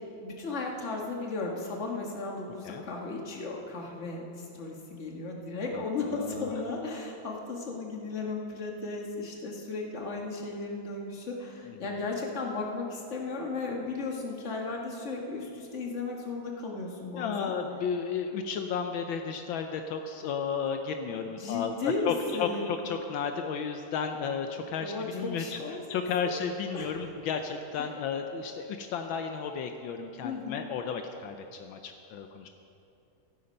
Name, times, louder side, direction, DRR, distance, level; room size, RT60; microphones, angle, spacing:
voice 1, 0.2-17.5 21.2-22.7 24.8-26.4 26.7-27.0 30.2-30.6, left 3 dB, 40° left, 0 dB, 1.9 m, -35 dB
voice 2, 5.7-6.5 11.6-11.9 17.2-25.6 25.9-32.5, left 6 dB, 80° left, 5 dB, 1.5 m, -33 dB
14.0 x 13.0 x 5.4 m, 2.7 s
omnidirectional pair, 2.2 m